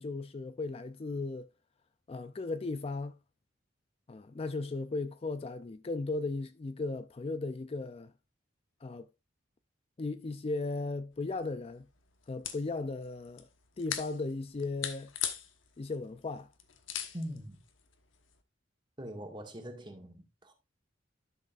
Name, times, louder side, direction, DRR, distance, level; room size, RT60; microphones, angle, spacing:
voice 1, 0.0-1.5 2.1-3.2 4.1-8.1 8.8-9.1 10.0-11.9 12.3-13.5 13.8-15.1 15.8-16.5, left 3 dB, 30° left, 0.4 m, -36 dB
sound 1, 11.1-18.4, left 9 dB, 90° left, 1.2 m, -42 dB
voice 2, 17.1-17.6 19.0-20.5, equal, 25° right, 1.8 m, -42 dB
12.0 x 6.5 x 2.4 m
head